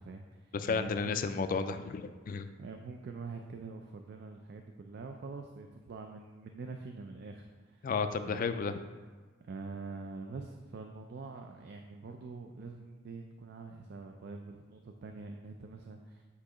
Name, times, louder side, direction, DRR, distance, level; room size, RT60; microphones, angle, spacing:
voice 1, 0.0-1.2 2.6-7.9 8.2-8.6 9.4-16.3, right 4 dB, 55° right, 4 dB, 0.4 m, -45 dB
voice 2, 0.5-2.5 7.8-8.8, left 5 dB, 45° left, 9 dB, 0.4 m, -32 dB
8.4 x 2.8 x 4.9 m, 1.4 s
head